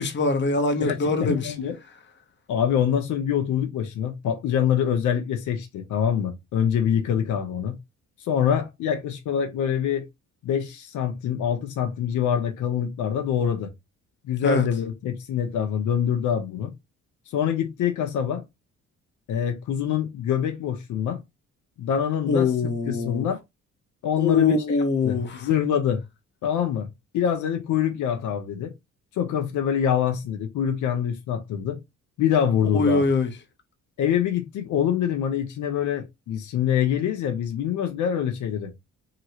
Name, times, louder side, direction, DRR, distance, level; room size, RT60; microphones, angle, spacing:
voice 1, 0.0-1.5 14.4-14.7 22.3-23.3 24.2-25.5 32.7-33.3, left 4 dB, 35° left, 0.8 m, -23 dB
voice 2, 0.8-1.8 2.5-7.8 8.3-10.0 10.4-13.7 14.2-16.7 17.3-18.4 19.3-21.2 21.8-23.4 24.0-24.5 25.0-26.0 26.4-26.9 27.1-28.7 29.2-31.8 32.2-33.0 34.0-38.7, left 8 dB, 75° left, 0.7 m, -25 dB
2.9 x 2.9 x 2.8 m
cardioid pair, 90°, 30 cm